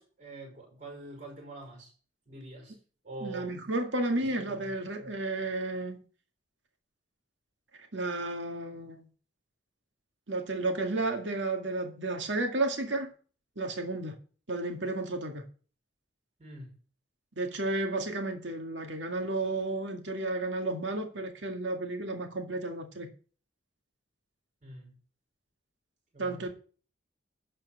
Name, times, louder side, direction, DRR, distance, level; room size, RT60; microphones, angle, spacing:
voice 1, 0.0-1.9 2.3-2.8 3.0-3.5 4.3-5.1 16.4-16.8 24.6-25.0 26.1-26.5, right 2 dB, 40° right, 5.3 m, -45 dB
voice 2, 3.2-6.0 7.9-9.1 10.3-13.1 13.6-14.2 14.5-15.5 17.4-23.1 26.2-26.5, right 2 dB, 70° right, 2.0 m, -32 dB
11.5 x 4.5 x 7.0 m
head